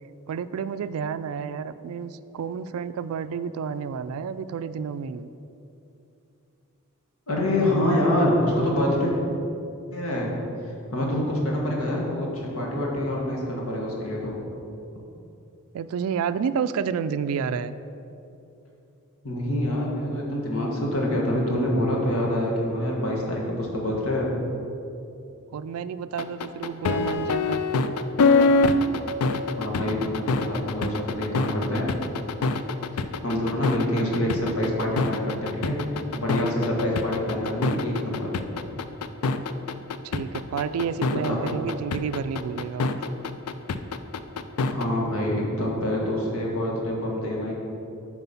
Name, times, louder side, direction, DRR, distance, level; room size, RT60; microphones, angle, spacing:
voice 1, 0.3-5.3 15.7-17.8 25.5-27.6 40.0-43.1, right 6 dB, 75° right, 14 dB, 0.3 m, -30 dB
voice 2, 7.3-9.1 9.9-10.3 10.6-14.4 19.2-24.3 29.6-31.8 32.9-35.8 36.1-38.4 41.1-41.4 44.6-47.5, left 1 dB, 70° left, -2 dB, 1.5 m, -26 dB
sound 1, 26.2-44.8, left 3 dB, 90° left, 0.4 m, -24 dB
7.9 x 4.6 x 5.6 m, 2.8 s
head